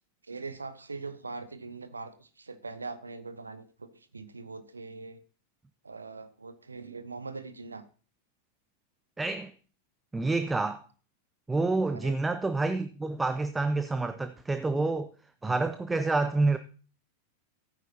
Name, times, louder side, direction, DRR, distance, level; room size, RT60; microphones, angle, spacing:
voice 1, 0.2-5.2 5.8-7.8 11.9-12.2, right 4 dB, 80° right, 0.9 m, -42 dB
voice 2, 9.2-9.5 10.1-10.8 11.5-15.1 15.4-16.6, right 3 dB, 10° right, 0.6 m, -28 dB
15.0 x 9.2 x 2.9 m
figure-of-eight pair, 90°, 0 cm